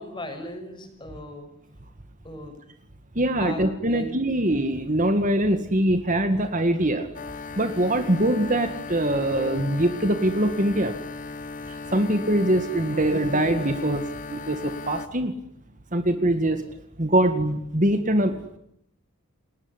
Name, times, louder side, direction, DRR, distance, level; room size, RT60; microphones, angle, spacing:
voice 1, 0.0-1.5 2.2-2.6 3.4-4.1, left 1 dB, 20° left, 6 dB, 6.3 m, -37 dB
voice 2, 3.2-7.1 7.6-11.0 11.7-14.0 14.3-15.3 15.9-16.6 17.0-18.6, right 1 dB, 35° right, 9 dB, 2.0 m, -23 dB
sound 1, 7.1-15.1, left 4 dB, 35° left, 1.1 m, -36 dB
29.5 x 20.5 x 9.9 m, 0.74 s
head